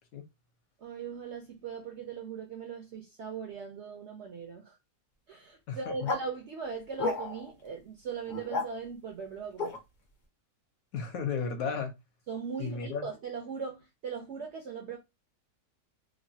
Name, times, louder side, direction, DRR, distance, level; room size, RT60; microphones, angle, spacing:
voice 1, 0.8-4.8 5.3-9.8 12.3-15.0, right 5 dB, 65° right, 0.7 m, -39 dB
voice 2, 5.7-6.1 10.9-11.9 12.6-13.1, left 5 dB, 70° left, 1.0 m, -34 dB
sound 1, 6.0-6.2 7.0-7.5 8.3-8.7 9.6-9.8, left 3 dB, 40° left, 0.7 m, -32 dB
3.0 x 2.2 x 2.7 m
omnidirectional pair, 1.7 m